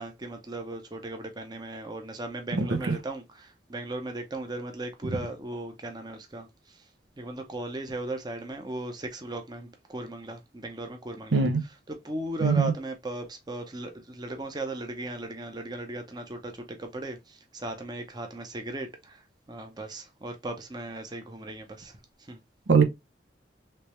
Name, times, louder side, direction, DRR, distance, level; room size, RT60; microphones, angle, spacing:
voice 1, 0.0-3.2 3.7-6.5 7.2-11.4 11.9-16.5 16.8-17.2 17.5-18.9 19.5-21.9 22.3-22.4, right 2 dB, 25° right, 0.6 m, -37 dB
voice 2, 2.5-2.9 11.3-11.6 12.4-12.7 22.7-22.8, right 5 dB, 90° right, 0.7 m, -22 dB
3.3 x 3.2 x 2.9 m
head